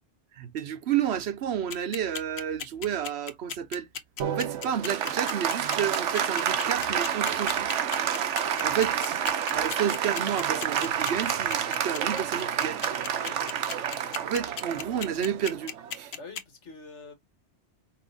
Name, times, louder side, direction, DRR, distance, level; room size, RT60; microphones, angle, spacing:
voice 1, 0.4-3.9 4.3-7.7 8.6-9.2 9.5-12.8 14.2-16.1, right 9 dB, 70° right, 0.9 m, -31 dB
sound 1, 1.7-16.4, left 8 dB, 65° left, 0.9 m, -35 dB
Applause, 4.2-16.1, right 8 dB, 90° right, 1.1 m, -29 dB
voice 2, 8.5-8.8 13.2-13.4 16.1-17.1, left 3 dB, 85° left, 1.8 m, -46 dB
5.6 x 2.8 x 2.6 m
omnidirectional pair, 1.2 m